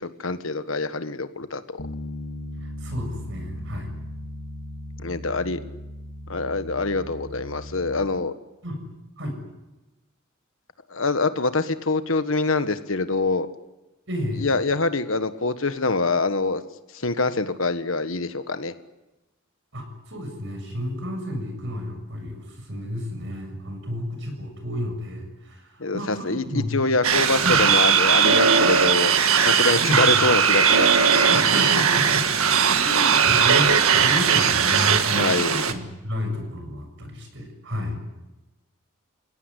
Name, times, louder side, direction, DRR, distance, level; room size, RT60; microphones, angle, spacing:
voice 1, 0.0-1.8 5.0-5.6 6.3-8.3 10.9-13.5 14.4-16.6 16.9-18.7 25.8-29.1 29.4-31.3 35.1-35.6, left 3 dB, 65° left, 10 dB, 1.5 m, -25 dB
Bass guitar, 1.8-8.0, left 1 dB, 85° left, 2.3 m, -37 dB
voice 2, 2.6-3.9 8.6-8.8 9.2-9.4 14.1-14.5 19.7-26.7 27.4-27.6 29.8-30.3 31.3-32.3 32.7-35.1 35.5-38.0, equal, 60° right, 4 dB, 7.3 m, -31 dB
sound 1, 27.0-35.7, right 7 dB, 90° right, 1.7 m, -19 dB
28.5 x 17.0 x 9.9 m, 1.0 s
head